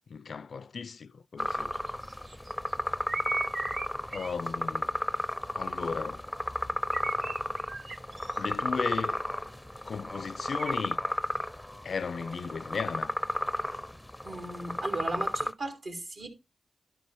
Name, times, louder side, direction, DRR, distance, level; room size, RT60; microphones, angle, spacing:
voice 1, 0.1-1.7 4.1-5.0 5.5-6.2 8.4-9.2 9.8-11.0 11.8-13.2, left 5 dB, 70° left, 0.4 m, -35 dB
sound 1, 1.4-15.5, left 1 dB, 10° left, 0.5 m, -33 dB
sound 2, 1.5-2.7 3.1-4.5 6.9-8.4 10.6-10.7, right 3 dB, 55° right, 0.5 m, -37 dB
voice 2, 14.2-16.3, right 2 dB, 75° right, 3.4 m, -36 dB
12.0 x 6.0 x 3.4 m
cardioid pair, 45°, 0 cm